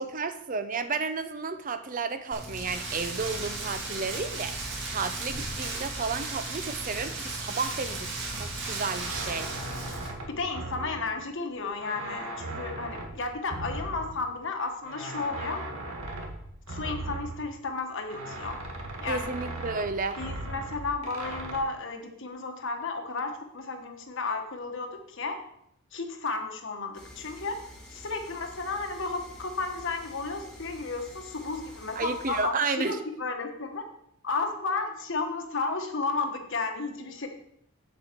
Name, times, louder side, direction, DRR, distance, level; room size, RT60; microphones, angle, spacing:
voice 1, 0.0-9.5 19.1-20.2 32.0-33.0, right 4 dB, 40° right, 10 dB, 0.6 m, -32 dB
Rain, 2.3-10.1, right 3 dB, 55° right, 2.2 m, -35 dB
sound 1, 8.3-11.5 11.8-14.4 14.8-17.8 18.1-21.6, right 1 dB, 90° right, 1.8 m, -38 dB
voice 2, 10.3-15.6 16.7-18.6 19.0-19.3 20.2-25.4 25.9-27.6 27.9-33.8 34.2-37.3, left 3 dB, 60° left, 5 dB, 1.3 m, -33 dB
sound 2, 26.9-32.4, left 1 dB, 5° left, 1.5 m, -49 dB
8.0 x 7.8 x 4.5 m, 0.74 s
head